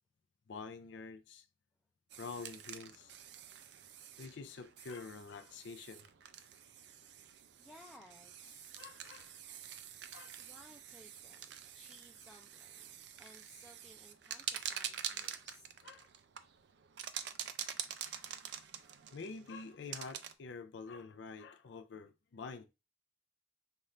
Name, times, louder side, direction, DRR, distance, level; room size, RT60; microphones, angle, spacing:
voice 1, 0.5-1.5 2.2-3.1 4.2-6.1 8.8-9.3 10.1-10.4 15.2-15.4 15.8-16.1 19.1-22.6, left 4 dB, 70° left, 0.4 m, -47 dB
sound 1, 2.1-20.3, right 9 dB, 65° right, 0.4 m, -47 dB
voice 2, 7.6-8.7 10.4-12.9 13.1-15.7, equal, 5° left, 0.4 m, -59 dB
5.4 x 2.4 x 3.1 m
head